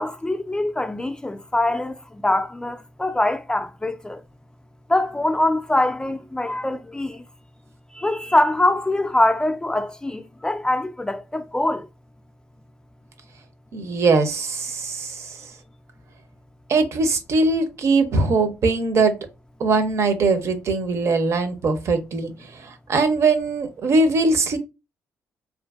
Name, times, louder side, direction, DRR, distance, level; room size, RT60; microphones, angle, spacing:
voice 1, 0.0-4.2 4.9-7.2 7.9-11.9, left 1 dB, 15° left, 0.3 m, -23 dB
voice 2, 13.7-15.4 16.7-19.1 19.6-22.3 22.9-24.6, right 3 dB, 60° right, 0.6 m, -21 dB
2.5 x 2.5 x 2.3 m
cardioid pair, 80°, 6 cm